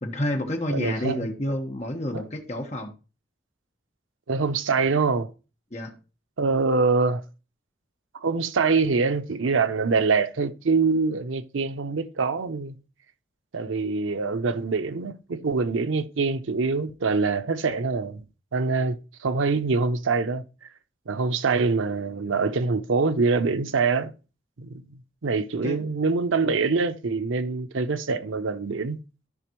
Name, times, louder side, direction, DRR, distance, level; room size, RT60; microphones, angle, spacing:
voice 1, 0.0-2.9 5.7-5.9 25.6-25.8, left 1 dB, 35° left, 1.3 m, -29 dB
voice 2, 0.7-1.2 2.1-2.2 4.3-5.3 6.4-7.2 8.2-12.8 13.5-18.2 18.5-20.4 21.1-24.1 24.6-24.8 25.2-29.0, right 4 dB, 90° right, 0.6 m, -24 dB
13.5 x 5.1 x 3.0 m
head